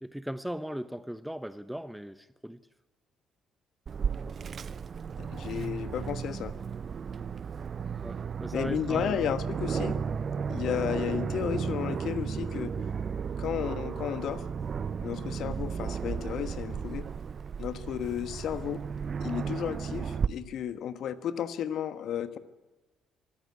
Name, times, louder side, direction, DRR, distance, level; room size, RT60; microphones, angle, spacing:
voice 1, 0.0-2.6 8.0-9.3 10.6-10.8 15.3-15.5, equal, 5° right, 13 dB, 0.9 m, -38 dB
Aircraft, 3.9-20.3, right 6 dB, 45° right, 0.7 m, -34 dB
voice 2, 5.2-6.5 8.5-10.0 10.5-12.7 13.4-14.5 15.0-17.1 17.6-18.8 19.2-22.4, left 9 dB, 60° left, 12 dB, 1.3 m, -33 dB
23.5 x 15.0 x 9.9 m, 1.1 s
hypercardioid pair, 50°, 0 cm